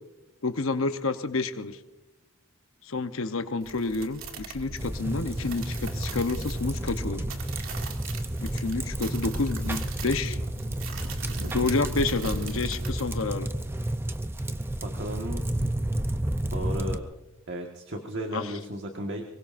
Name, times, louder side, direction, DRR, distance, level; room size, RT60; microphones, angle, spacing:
voice 1, 0.4-1.8 2.8-7.2 8.4-10.4 11.5-13.5 18.3-18.5, left 3 dB, 70° left, 8 dB, 0.9 m, -29 dB
sound 1, 3.6-13.2, right 2 dB, 75° right, 2.3 m, -37 dB
sound 2, 4.8-17.0, right 1 dB, 10° right, 0.5 m, -31 dB
voice 2, 14.8-15.6 16.5-17.0 17.5-19.2, equal, 55° right, 2 dB, 1.5 m, -34 dB
24.5 x 22.5 x 2.6 m, 0.97 s
head